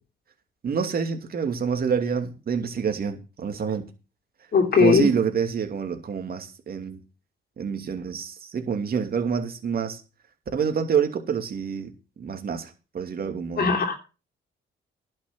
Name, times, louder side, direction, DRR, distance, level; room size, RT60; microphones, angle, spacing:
voice 1, 0.6-3.9 4.8-7.0 7.6-10.0 10.5-11.9 12.2-13.7, right 6 dB, 50° right, 2.7 m, -27 dB
voice 2, 4.5-5.1 13.6-14.0, left 5 dB, 50° left, 3.1 m, -19 dB
11.0 x 6.4 x 7.6 m
cardioid pair, 90°, 20 cm